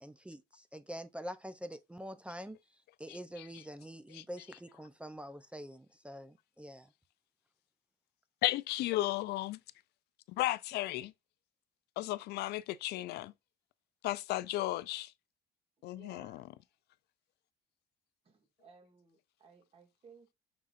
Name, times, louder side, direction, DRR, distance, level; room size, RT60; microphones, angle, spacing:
voice 1, 0.0-2.6 3.0-6.9, equal, 5° right, 0.5 m, -45 dB
voice 2, 3.1-3.6 4.1-4.2 8.4-9.6 10.4-11.1 12.0-13.3 14.0-15.1 15.8-16.4, left 16 dB, 75° left, 0.4 m, -34 dB
voice 3, 16.0-16.5 18.2-20.3, right 5 dB, 35° right, 2.0 m, -60 dB
5.6 x 3.7 x 2.5 m
cardioid pair, 110°, 17 cm